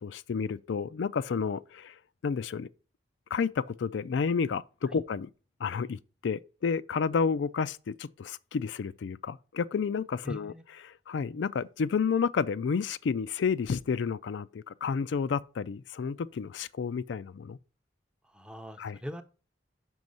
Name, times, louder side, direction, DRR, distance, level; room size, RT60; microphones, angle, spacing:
voice 1, 0.0-2.7 3.3-5.3 5.6-10.5 10.8-17.6 18.8-19.0, left 5 dB, 80° left, 0.4 m, -31 dB
voice 2, 10.2-10.6 18.2-19.2, equal, 5° right, 0.6 m, -42 dB
6.2 x 5.3 x 5.4 m
head